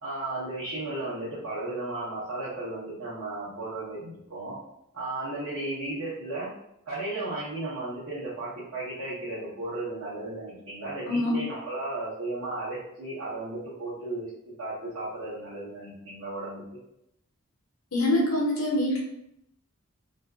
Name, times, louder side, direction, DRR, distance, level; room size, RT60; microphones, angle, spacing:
voice 1, 0.0-4.6 4.9-6.5 6.9-14.3 14.6-16.6, right 2 dB, 70° right, -10 dB, 0.8 m, -34 dB
voice 2, 17.9-19.0, left 1 dB, 75° left, -3 dB, 0.7 m, -24 dB
2.5 x 2.3 x 2.2 m, 0.78 s
head